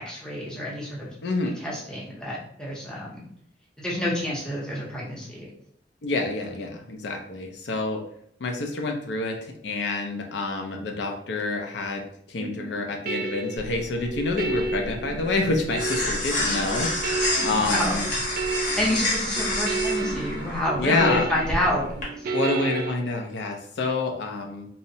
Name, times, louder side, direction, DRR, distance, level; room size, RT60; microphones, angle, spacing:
voice 1, 0.1-1.1 1.6-3.2 3.8-5.5 17.4-17.9 18.8-21.9 22.2-22.3, left 1 dB, 5° left, -5 dB, 0.6 m, -28 dB
voice 2, 1.2-1.5 6.0-8.0 8.4-9.4 9.6-12.0 12.3-18.0 20.8-21.3 22.3-24.7, left 3 dB, 75° left, 3 dB, 0.4 m, -27 dB
sound 1, 12.4-22.9, right 4 dB, 55° right, 0.3 m, -32 dB
sound 2, 13.6-22.0, left 1 dB, 50° left, 0.9 m, -29 dB
2.7 x 2.0 x 2.6 m, 0.68 s
head